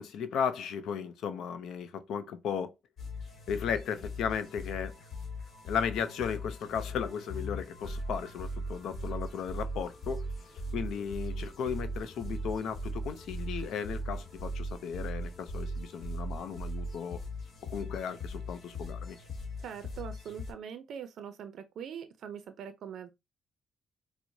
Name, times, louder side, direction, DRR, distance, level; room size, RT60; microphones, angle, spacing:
voice 1, 0.0-2.7 3.5-5.0 5.6-10.3 10.7-17.2 17.6-19.2, left 7 dB, 75° left, 0.5 m, -35 dB
sound 1, 3.0-20.5, equal, 55° left, 1.1 m, -39 dB
voice 2, 19.6-23.1, right 8 dB, 70° right, 0.4 m, -42 dB
4.4 x 2.0 x 2.6 m
cardioid pair, 90°, 0 cm